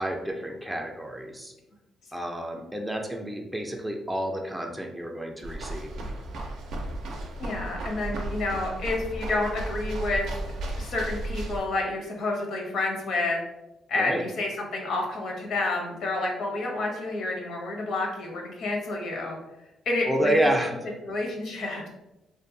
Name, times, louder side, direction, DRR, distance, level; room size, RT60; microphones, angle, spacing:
voice 1, 0.0-1.5 2.1-5.9 14.0-14.2 20.1-20.9, right 1 dB, 10° right, 2 dB, 0.3 m, -29 dB
sound 1, 5.4-11.6, right 1 dB, 80° right, 0.4 m, -34 dB
voice 2, 7.4-10.2 10.8-13.4 13.9-19.4 19.9-20.5 21.1-21.9, left 2 dB, 70° left, 0 dB, 0.7 m, -29 dB
2.6 x 2.2 x 2.6 m, 0.95 s
cardioid pair, 90°, 0 cm